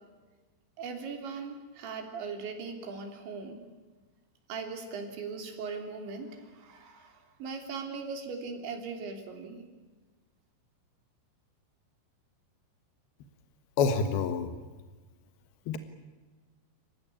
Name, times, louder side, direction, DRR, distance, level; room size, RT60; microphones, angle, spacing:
voice 1, 0.8-3.6 4.5-9.7, right 5 dB, 70° right, 5 dB, 5.5 m, -39 dB
voice 2, 13.8-14.5 15.7-15.8, left 5 dB, 65° left, 9 dB, 2.9 m, -27 dB
28.5 x 16.5 x 10.0 m, 1.3 s
omnidirectional pair, 5.4 m